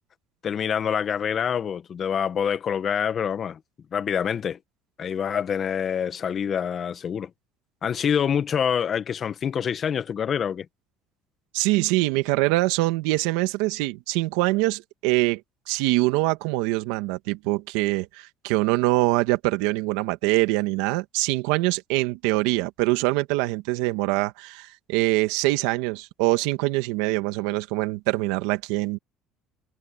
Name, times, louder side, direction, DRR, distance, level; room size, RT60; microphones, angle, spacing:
voice 1, 0.4-3.6 3.9-4.6 5.0-7.3 7.8-10.6, left 8 dB, 40° left, 1.6 m, -26 dB
voice 2, 11.5-15.4 15.7-29.0, right 20 dB, 90° right, 1.8 m, -24 dB
cardioid pair, 115°, 0 cm